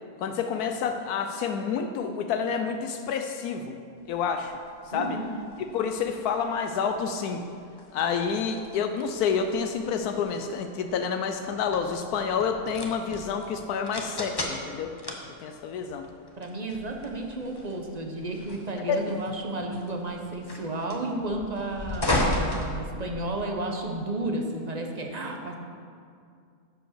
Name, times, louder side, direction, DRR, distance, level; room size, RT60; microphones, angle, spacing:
voice 1, 0.2-3.8 4.1-4.6 4.9-5.2 5.6-7.4 7.9-14.9 15.4-16.1 18.9-19.2, left 6 dB, 80° left, 6 dB, 1.1 m, -29 dB
sound 1, 4.1-23.5, left 1 dB, 20° left, 0.6 m, -36 dB
voice 2, 4.9-5.3 16.4-22.1 22.5-25.6, right 2 dB, 35° right, 2 dB, 0.8 m, -32 dB
10.0 x 5.1 x 6.6 m, 2.3 s
omnidirectional pair, 1.6 m